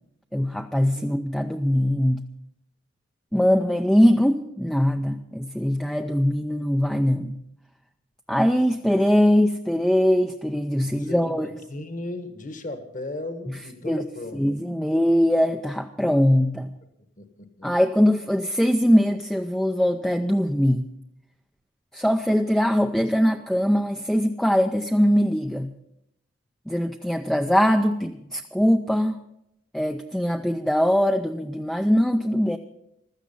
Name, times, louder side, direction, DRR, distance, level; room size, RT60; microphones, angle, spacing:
voice 1, 0.3-2.3 3.3-7.4 8.3-11.5 13.8-14.0 14.3-16.7 17.6-20.9 21.9-25.7 26.7-29.2 29.7-32.6, equal, 5° left, 5 dB, 0.5 m, -21 dB
voice 2, 10.8-14.6 17.2-17.7, left 2 dB, 45° left, 7 dB, 1.4 m, -36 dB
15.5 x 12.5 x 5.5 m, 0.81 s
head